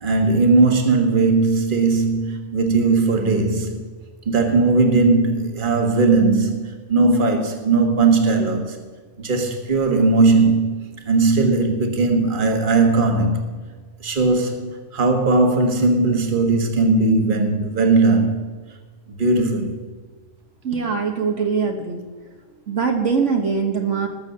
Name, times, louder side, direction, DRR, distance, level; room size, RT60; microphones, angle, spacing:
voice 1, 0.0-3.8 4.2-8.8 9.2-10.7 11.0-13.4 14.0-18.4 19.1-19.7, right 3 dB, 40° right, 1.6 m, -18 dB
voice 2, 20.6-22.0 22.7-24.1, right 5 dB, 65° right, 1.5 m, -22 dB
19.5 x 7.0 x 6.8 m
omnidirectional pair, 1.4 m